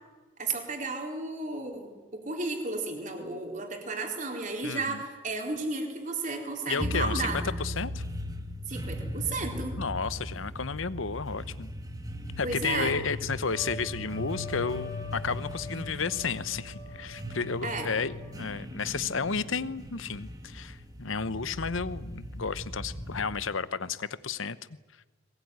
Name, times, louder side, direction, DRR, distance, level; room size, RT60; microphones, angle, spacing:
voice 1, 0.4-7.5 8.7-9.8 12.4-12.9 17.6-17.9, right 3 dB, 40° right, 3 dB, 4.0 m, -33 dB
voice 2, 4.6-5.0 6.7-8.0 9.8-11.7 12.4-24.6, left 5 dB, 75° left, 16 dB, 1.0 m, -32 dB
sound 1, 6.8-23.6, left 1 dB, 20° right, 1.8 m, -38 dB
Trumpet, 13.5-18.5, left 1 dB, 15° left, 4.8 m, -45 dB
22.0 x 20.0 x 9.6 m, 1.3 s
head